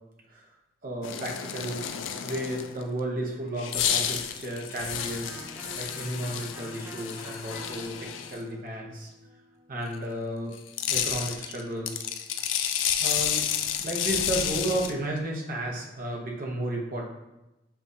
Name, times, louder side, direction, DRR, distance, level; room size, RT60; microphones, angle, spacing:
voice 1, 0.8-1.8 2.2-5.4 5.8-9.1 9.7-10.5 10.9-12.1 13.0-13.4 13.8-17.1, right 1 dB, 50° right, -1 dB, 0.9 m, -33 dB
sound 1, 1.0-2.8 3.6-8.4 10.5-14.9, left 9 dB, 85° left, 0.3 m, -31 dB
Electric guitar, 4.9-10.5, equal, 10° right, 0.6 m, -47 dB
6.9 x 2.5 x 2.7 m, 0.97 s
head